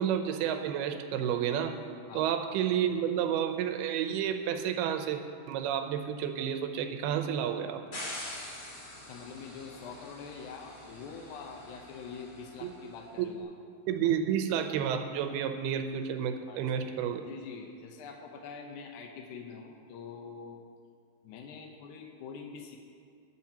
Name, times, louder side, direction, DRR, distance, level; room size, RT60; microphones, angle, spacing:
voice 1, 0.0-1.8 2.1-5.2 5.5-7.8 12.6-12.7 13.2-13.3 13.9-17.2, right 9 dB, 80° right, 7 dB, 2.6 m, -30 dB
sound 1, 7.9-13.0, left 1 dB, 35° left, 2.0 m, -45 dB
voice 2, 9.1-13.5 16.5-16.6 17.3-20.6 21.2-22.8, left 5 dB, 75° left, 2 dB, 1.8 m, -45 dB
20.5 x 8.4 x 2.9 m, 2.1 s
omnidirectional pair, 4.6 m